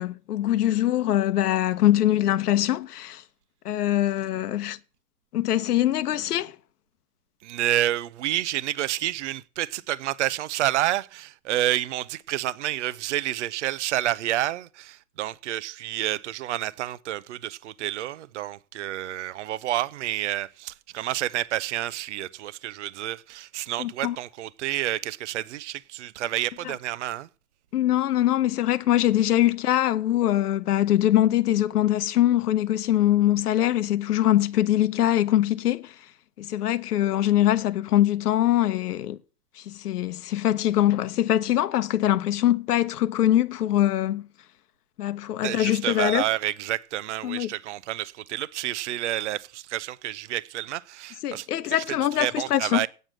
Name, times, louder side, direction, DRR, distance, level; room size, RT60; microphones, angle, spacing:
voice 1, 0.0-3.2 3.6-4.8 5.3-6.5 23.8-24.2 27.7-35.9 36.4-39.2 39.6-44.3 45.0-46.2 47.2-47.5 51.2-52.8, left 13 dB, 85° left, 0.9 m, -23 dB
voice 2, 7.4-27.3 45.4-52.9, right 14 dB, 50° right, 0.5 m, -29 dB
9.1 x 6.5 x 7.5 m
supercardioid pair, 180°, 45 cm